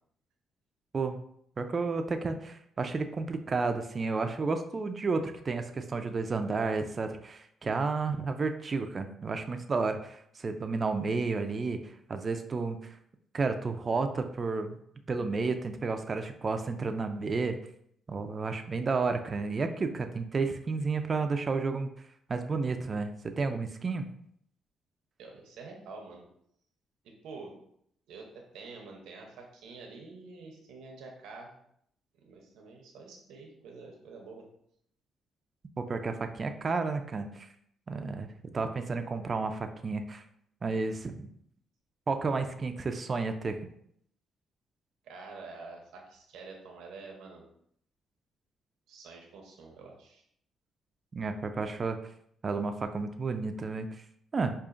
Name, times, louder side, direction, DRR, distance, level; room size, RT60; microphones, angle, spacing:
voice 1, 1.6-11.8 12.1-12.8 13.3-14.8 15.1-17.6 18.1-21.9 22.3-24.1 35.8-37.5 37.9-40.2 40.6-41.1 42.1-43.6 51.1-52.0 52.4-53.9 54.3-54.5, right 4 dB, 35° right, 7 dB, 0.4 m, -31 dB
voice 2, 25.2-26.2 27.0-27.6 28.1-31.5 32.2-34.5 45.0-47.5 48.9-50.2, right 3 dB, 85° right, 0 dB, 0.7 m, -47 dB
4.9 x 2.5 x 2.4 m, 0.69 s
cardioid pair, 90°, 0 cm